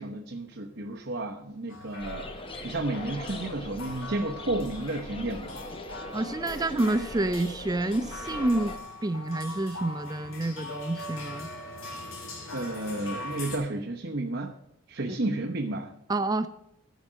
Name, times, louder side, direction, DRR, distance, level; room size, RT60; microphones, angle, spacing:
voice 1, 0.0-2.3 2.6-5.6 12.5-14.5 14.9-15.9, right 2 dB, 55° right, -1 dB, 1.0 m, -32 dB
sound 1, 1.7-13.6, left 2 dB, 70° left, 2.8 m, -42 dB
sound 2, 2.0-8.8, left 1 dB, 25° left, 0.9 m, -41 dB
voice 2, 6.1-11.5 16.1-16.5, right 2 dB, 20° right, 12 dB, 0.4 m, -28 dB
15.0 x 5.2 x 6.2 m, 0.80 s
head